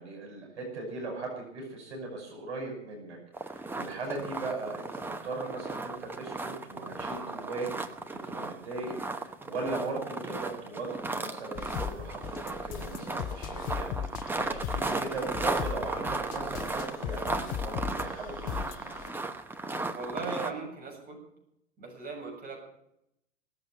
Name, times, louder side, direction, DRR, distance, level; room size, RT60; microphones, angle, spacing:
voice 1, 0.0-3.2 3.4-19.0, right 3 dB, 65° right, 0 dB, 5.8 m, -38 dB
sound 1, 3.3-20.5, right 3 dB, 5° right, 0.9 m, -35 dB
sound 2, 11.5-19.1, left 9 dB, 25° left, 0.5 m, -38 dB
voice 2, 19.9-21.2 21.8-22.6, right 4 dB, 25° right, 0 dB, 7.4 m, -38 dB
18.5 x 7.7 x 9.1 m, 0.77 s
figure-of-eight pair, 95°, 37 cm